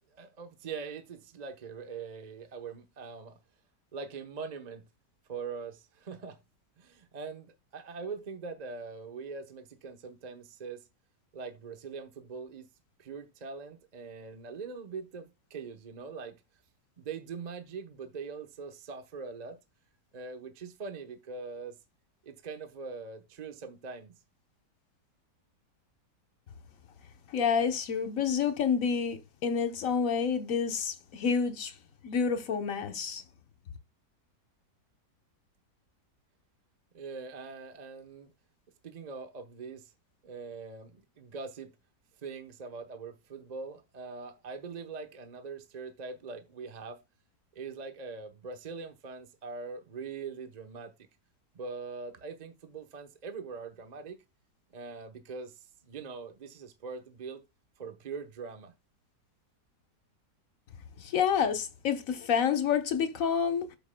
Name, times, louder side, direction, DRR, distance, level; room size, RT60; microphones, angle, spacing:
voice 1, 0.1-3.4 3.9-4.9 5.3-6.4 6.8-10.8 11.3-12.7 13.0-16.4 17.0-19.6 20.1-21.8 22.2-24.2 36.9-38.3 38.8-39.9 40.2-41.7 42.2-47.0 47.5-50.9 51.5-54.2 54.7-57.4 57.8-58.7, right 5 dB, 35° right, 0.8 m, -42 dB
voice 2, 27.3-31.7 32.0-33.2 61.0-63.8, left 7 dB, 60° left, 1.3 m, -28 dB
12.5 x 5.4 x 2.2 m
omnidirectional pair, 1.8 m